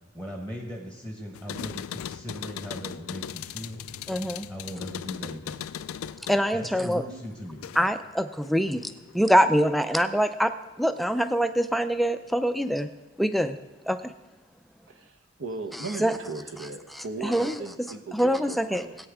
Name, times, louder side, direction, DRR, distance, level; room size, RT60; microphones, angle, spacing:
voice 1, 0.1-3.9 4.5-5.7 6.5-7.7, equal, 15° right, 1 dB, 1.2 m, -38 dB
sound 1, 1.3-8.1 8.4-9.3, left 9 dB, 85° left, 0.3 m, -39 dB
voice 2, 4.1-4.5 6.3-7.0 7.8-12.9 13.2-13.6 13.9-14.1 16.0-16.1 17.2-17.5 18.1-18.8, equal, ahead, 9 dB, 0.3 m, -24 dB
voice 3, 14.9-19.0, right 3 dB, 70° right, 6 dB, 0.9 m, -37 dB
17.0 x 8.8 x 3.6 m, 1.2 s
head